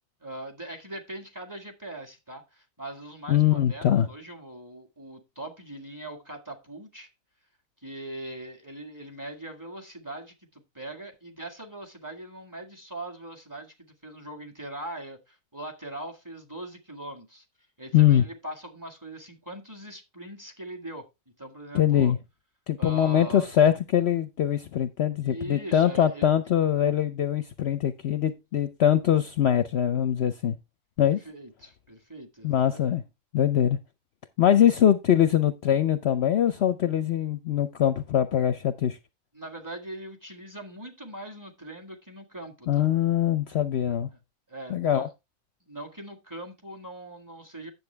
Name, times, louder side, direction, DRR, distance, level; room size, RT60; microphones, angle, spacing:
voice 1, 0.2-7.1 7.8-17.4 17.8-21.1 21.4-22.1 22.8-23.5 25.2-26.3 31.0-32.8 39.3-42.9 44.5-45.1 45.6-47.7, right 1 dB, 15° right, 1.8 m, -41 dB
voice 2, 3.3-4.1 17.9-18.2 21.7-22.2 22.7-30.6 31.0-31.2 32.4-33.0 33.3-33.8 34.4-39.0 42.7-44.1 44.7-45.1, left 10 dB, 60° left, 0.8 m, -23 dB
9.7 x 7.3 x 3.4 m
omnidirectional pair, 1.4 m